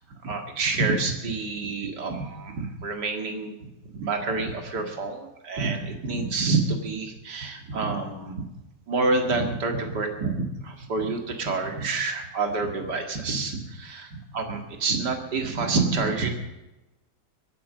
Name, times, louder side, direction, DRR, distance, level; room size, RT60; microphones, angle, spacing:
voice 1, 0.2-3.5 3.9-8.4 8.9-16.3, right 3 dB, 75° right, 3 dB, 2.6 m, -28 dB
23.5 x 8.6 x 6.5 m, 1.0 s
omnidirectional pair, 1.8 m